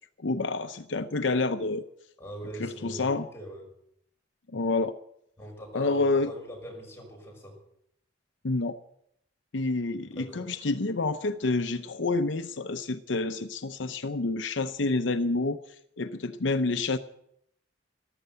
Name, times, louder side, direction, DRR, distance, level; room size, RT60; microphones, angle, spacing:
voice 1, 0.2-1.8 2.6-3.3 4.5-4.9 5.7-6.3 8.4-8.7 9.5-15.6 16.0-17.0, left 3 dB, 75° left, 9 dB, 0.8 m, -28 dB
voice 2, 2.2-3.6 5.4-7.6 10.0-10.5, equal, 15° left, -1 dB, 5.6 m, -42 dB
14.0 x 13.0 x 7.9 m, 0.72 s
head